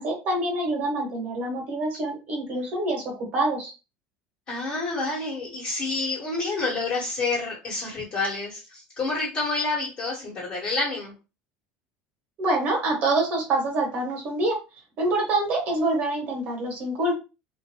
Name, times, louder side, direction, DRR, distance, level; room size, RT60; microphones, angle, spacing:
voice 1, 0.0-3.7 12.4-14.6 15.0-17.1, right 2 dB, 45° right, 0 dB, 1.2 m, -26 dB
voice 2, 4.5-11.1, left 3 dB, 35° left, -6 dB, 1.3 m, -28 dB
2.6 x 2.2 x 2.9 m, 0.29 s
cardioid pair, 150°, 4 cm